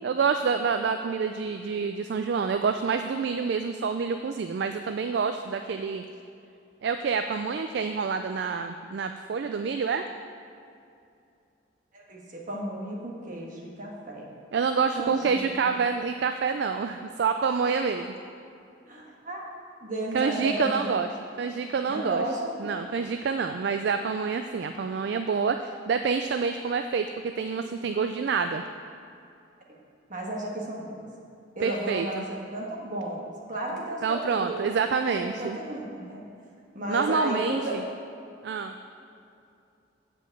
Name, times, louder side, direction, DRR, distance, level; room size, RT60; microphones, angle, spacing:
voice 1, 0.0-6.1 6.8-10.0 14.5-18.1 20.1-21.1 21.4-22.2 22.6-28.6 31.6-32.2 34.0-35.6 36.9-37.8 38.4-38.7, right 5 dB, 60° right, 7 dB, 0.3 m, -27 dB
voice 2, 11.9-14.3 15.0-15.8 17.6-17.7 18.9-19.4 19.8-20.9 21.9-22.8 30.1-31.0 31.5-34.7 35.1-36.2 36.7-37.8, right 1 dB, 40° right, -2 dB, 1.5 m, -33 dB
7.6 x 5.2 x 7.5 m, 2.5 s
head